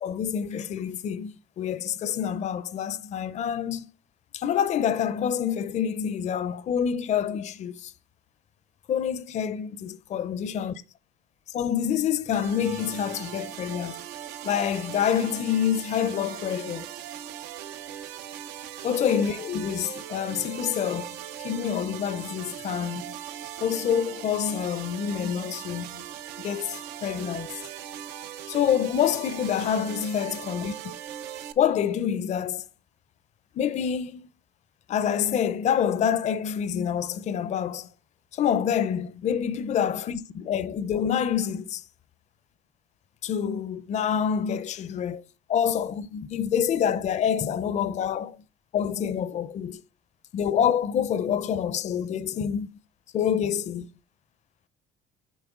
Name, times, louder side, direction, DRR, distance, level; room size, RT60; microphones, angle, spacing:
voice 1, 0.0-3.9 4.3-7.9 8.9-10.8 11.5-14.0 14.4-16.9 18.8-23.1 23.6-26.0 26.4-27.5 28.5-30.8 31.6-32.7 33.6-34.3 34.9-37.9 38.3-41.8 43.2-45.2 45.5-48.4 48.7-49.8 50.3-52.8 53.1-53.9, left 8 dB, 45° left, 0.4 m, -27 dB
sound 1, 12.3-31.5, right 10 dB, 85° right, 0.5 m, -39 dB
7.0 x 4.2 x 3.6 m
cardioid pair, 110°, 17 cm